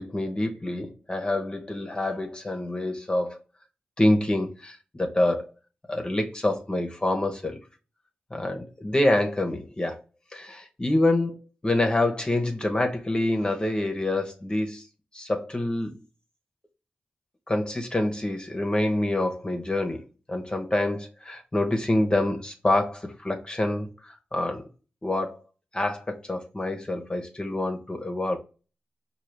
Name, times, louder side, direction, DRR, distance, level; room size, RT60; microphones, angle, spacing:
voice 1, 0.0-3.4 4.0-5.5 5.9-7.6 8.3-10.0 10.3-11.3 11.6-14.8 15.1-15.9 17.5-20.0 20.3-24.6 25.0-25.4 25.7-28.4, left 1 dB, 25° left, 0.9 m, -26 dB
4.6 x 2.4 x 3.3 m
cardioid pair, 45°, 4 cm